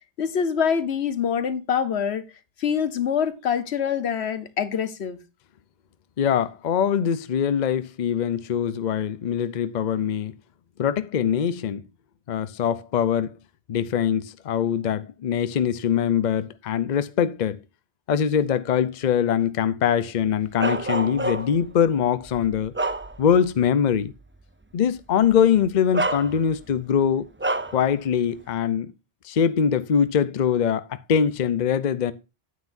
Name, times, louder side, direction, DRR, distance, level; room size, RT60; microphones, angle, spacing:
voice 1, 0.2-2.2 2.6-5.2, left 7 dB, 80° left, 1.2 m, -25 dB
voice 2, 6.2-10.3 10.8-11.8 12.3-13.4 13.7-17.6 18.1-22.7 23.2-24.1 24.7-27.3 27.7-28.9 29.2-32.1, left 8 dB, 50° left, 0.7 m, -23 dB
Bark, 20.6-21.7 22.3-23.5 23.9-24.1 25.2-25.4 25.9-26.7 27.4-27.8, right 2 dB, 20° right, 0.3 m, -28 dB
9.5 x 9.4 x 2.6 m
omnidirectional pair, 1.1 m